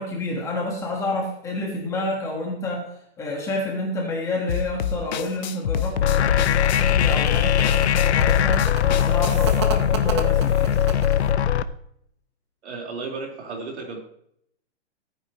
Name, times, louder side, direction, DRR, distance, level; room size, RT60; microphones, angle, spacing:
voice 1, 0.0-2.8 3.2-8.6 8.9-10.8, left 2 dB, 10° left, -1 dB, 1.5 m, -29 dB
sound 1, 4.5-9.5, left 8 dB, 40° left, 0.6 m, -27 dB
sound 2, 6.0-11.6, left 10 dB, 70° left, 0.8 m, -20 dB
sound 3, 6.2-11.3, right 6 dB, 25° right, 0.8 m, -34 dB
voice 2, 12.6-14.0, right 4 dB, 70° right, 0 dB, 4.2 m, -33 dB
17.0 x 9.4 x 3.1 m, 0.71 s
hypercardioid pair, 175°, 35 cm